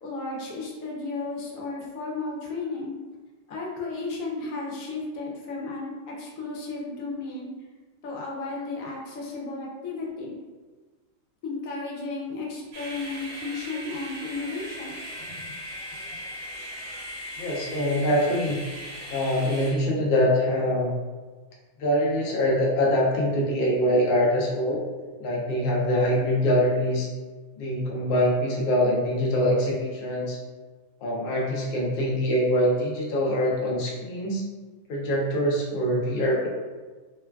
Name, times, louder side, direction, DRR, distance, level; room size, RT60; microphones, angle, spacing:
voice 1, 0.0-3.0 3.5-7.5 8.0-10.4 11.4-15.6, left 3 dB, 90° left, -3 dB, 1.1 m, -34 dB
sound 1, 12.7-19.7, equal, 60° right, 0.9 m, -38 dB
voice 2, 17.4-18.6 19.1-20.9 21.8-24.8 25.2-27.1 27.6-30.4 31.0-34.4 34.9-36.5, equal, 55° left, -3 dB, 0.7 m, -24 dB
3.0 x 2.2 x 2.2 m, 1.3 s
omnidirectional pair, 1.3 m